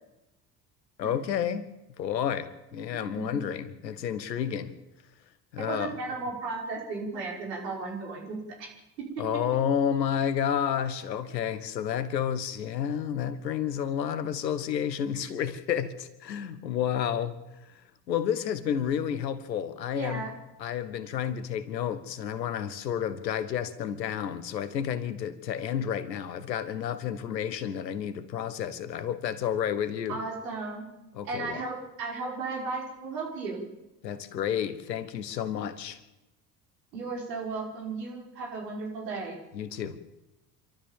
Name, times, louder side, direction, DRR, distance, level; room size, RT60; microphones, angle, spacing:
voice 1, 1.0-1.6 2.0-4.7 5.5-5.9 9.2-17.4 18.1-20.2 20.6-30.2 31.1-31.6 34.0-36.0 39.5-40.0, left 9 dB, 80° left, 14 dB, 1.5 m, -30 dB
voice 2, 5.6-8.7 9.0-9.4 19.9-20.3 30.1-30.8 31.3-33.6 36.9-39.4, right 3 dB, 75° right, -1 dB, 5.6 m, -35 dB
27.0 x 13.0 x 7.3 m, 0.98 s
figure-of-eight pair, 55°, 50 cm